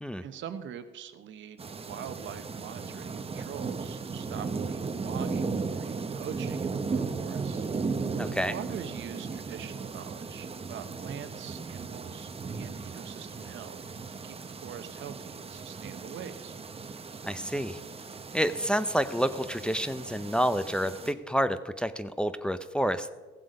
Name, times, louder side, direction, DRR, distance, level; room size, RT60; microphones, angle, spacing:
voice 1, 0.2-7.7 8.1-16.6, right 9 dB, 70° right, 10 dB, 0.9 m, -44 dB
sound 1, 1.6-21.1, right 4 dB, 30° right, 0.9 m, -36 dB
voice 2, 8.2-8.6 17.2-17.8 18.3-23.1, equal, 5° left, 10 dB, 0.6 m, -29 dB
16.0 x 7.6 x 5.3 m, 1.3 s
cardioid pair, 90°, 20 cm